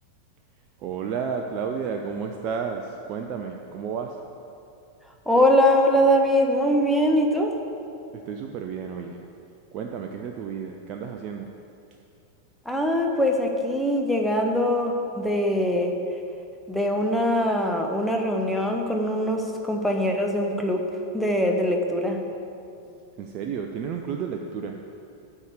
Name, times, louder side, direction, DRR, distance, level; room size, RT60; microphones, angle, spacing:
voice 1, 0.8-4.2 8.1-9.2 9.7-11.5 22.8-22.9 23.2-24.8, right 6 dB, 40° right, 3 dB, 0.4 m, -32 dB
voice 2, 5.3-7.5 12.7-16.0 16.7-20.9 21.1-22.2, equal, ahead, 1 dB, 0.8 m, -22 dB
9.1 x 3.6 x 6.6 m, 2.6 s
figure-of-eight pair, 90°, 0 cm